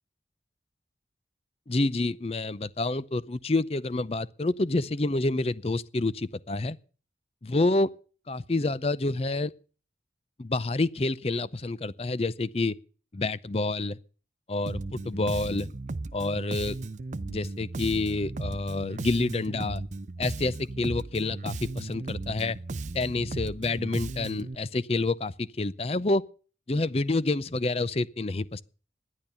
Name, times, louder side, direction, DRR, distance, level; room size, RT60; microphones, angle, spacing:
voice 1, 1.7-6.8 7.4-7.9 8.3-9.5 10.4-12.8 13.1-14.0 14.5-15.7 16.1-16.8 17.3-19.8 20.2-22.6 22.9-26.2 26.7-28.6, left 2 dB, 35° left, 0.6 m, -28 dB
Bass guitar, 14.7-24.5, right 2 dB, 45° right, 0.6 m, -36 dB
12.5 x 10.5 x 6.8 m
head